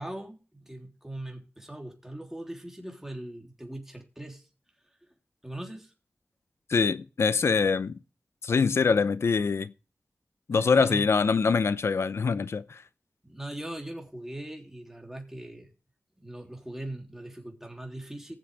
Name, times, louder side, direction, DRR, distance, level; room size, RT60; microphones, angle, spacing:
voice 1, 0.0-4.4 5.4-5.9 10.5-11.0 13.2-15.7 16.2-18.4, right 1 dB, 10° right, 3.3 m, -40 dB
voice 2, 6.7-8.0 8.4-9.7 10.5-12.8, left 5 dB, 85° left, 0.6 m, -24 dB
19.0 x 7.6 x 3.4 m
cardioid pair, 40°, 4 cm